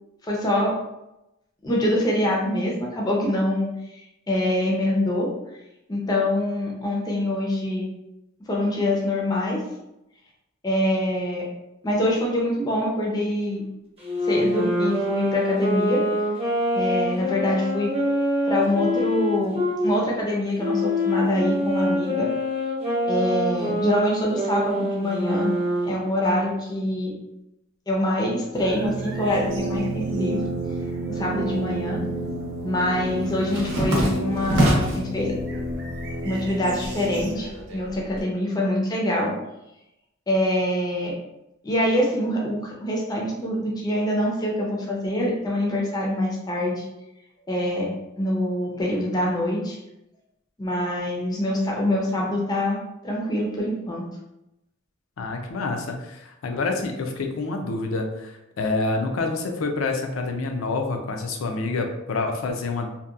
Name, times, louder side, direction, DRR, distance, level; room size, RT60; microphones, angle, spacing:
voice 1, 0.2-0.8 1.6-5.3 5.9-7.9 8.5-9.6 10.6-11.5 11.8-13.6 14.2-16.0 16.7-17.9 18.5-19.6 19.8-22.3 23.1-25.5 25.8-27.1 27.9-30.4 31.1-32.0 32.6-35.4 36.2-39.3 40.3-41.1 41.6-46.8 47.5-47.9 48.2-49.8 50.6-52.8 53.0-54.0, left 1 dB, 20° left, -2 dB, 0.4 m, -24 dB
Wind instrument woodwind instrument, 14.0-19.8 20.6-26.0, left 1 dB, 30° right, 0.8 m, -25 dB
sound 1, 28.5-37.3, right 1 dB, 55° right, 0.4 m, -30 dB
sound 2, 31.4-32.0 32.3-35.1 35.6-36.2 36.5-38.2, right 1 dB, 80° right, 0.7 m, -26 dB
voice 2, 55.2-62.9, left 3 dB, 85° left, 4 dB, 0.4 m, -27 dB
2.7 x 2.1 x 2.3 m, 0.90 s
head